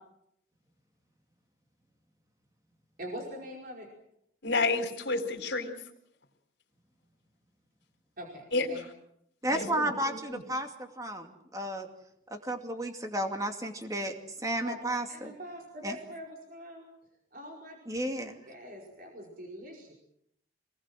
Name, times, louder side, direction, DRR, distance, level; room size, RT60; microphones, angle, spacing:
voice 1, 3.0-3.9 8.2-8.8 14.6-14.8 15.1-16.9 17.3-17.8 18.5-19.9, equal, 50° right, 0 dB, 5.0 m, -43 dB
voice 2, 4.4-5.7 8.5-8.7 9.5-10.4, left 3 dB, 70° left, 5 dB, 4.1 m, -30 dB
voice 3, 9.4-11.9 12.3-15.3 15.8-16.0 17.9-18.4, right 1 dB, 20° right, 5 dB, 2.5 m, -33 dB
27.0 x 19.5 x 7.7 m, 0.75 s
head